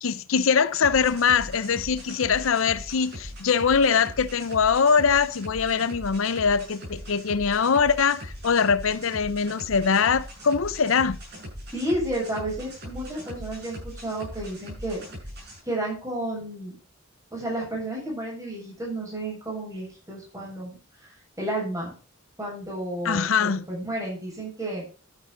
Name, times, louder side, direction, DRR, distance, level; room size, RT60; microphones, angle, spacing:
voice 1, 0.0-11.2 23.0-23.6, left 6 dB, 75° left, 0.6 m, -22 dB
sound 1, 0.8-15.6, equal, 55° right, 7.9 m, -40 dB
voice 2, 11.7-15.0 15.6-16.8 17.3-20.8 21.0-21.9 22.4-24.8, right 1 dB, 15° right, 7.2 m, -32 dB
12.0 x 10.5 x 3.8 m
head